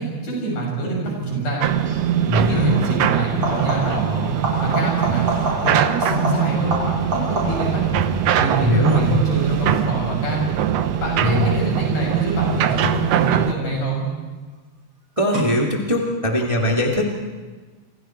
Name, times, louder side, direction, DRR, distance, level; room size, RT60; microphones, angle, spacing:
voice 1, 0.0-1.7 2.4-4.3 4.6-5.2 5.6-6.8 7.1-7.8 8.4-10.5 11.0-14.1, right 2 dB, 75° left, -2 dB, 9.4 m, -25 dB
sound 1, 1.6-13.5, right 9 dB, 65° right, 1.8 m, -22 dB
sound 2, 1.8-2.1 3.3-4.1 4.4-7.8 13.2-13.8 15.3-15.4, right 2 dB, 45° right, 7.0 m, -27 dB
voice 2, 2.3-2.8 8.6-9.2 11.2-11.8 15.2-17.1, left 1 dB, 10° right, -1 dB, 2.2 m, -20 dB
28.0 x 27.5 x 4.6 m, 1.3 s
omnidirectional pair, 3.7 m